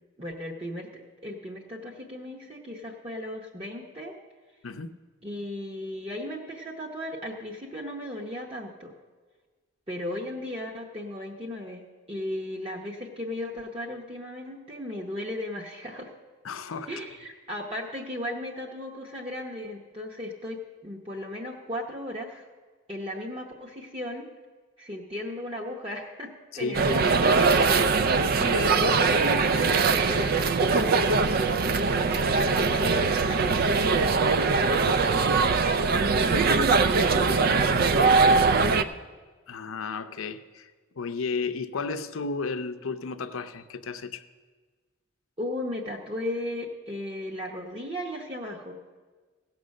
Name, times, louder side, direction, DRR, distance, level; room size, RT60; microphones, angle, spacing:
voice 1, 0.2-4.2 5.2-8.9 9.9-16.1 16.9-22.4 22.9-24.3 24.8-28.1 28.5-31.2 31.6-35.5 36.3-38.9 45.4-48.7, left 1 dB, 30° right, 0.9 m, -36 dB
voice 2, 16.4-16.9 26.5-27.1 28.4-28.9 39.5-40.7 41.0-44.2, left 4 dB, 80° left, 0.6 m, -33 dB
sound 1, 26.7-38.8, right 4 dB, 45° right, 0.4 m, -22 dB
16.0 x 6.0 x 6.4 m
head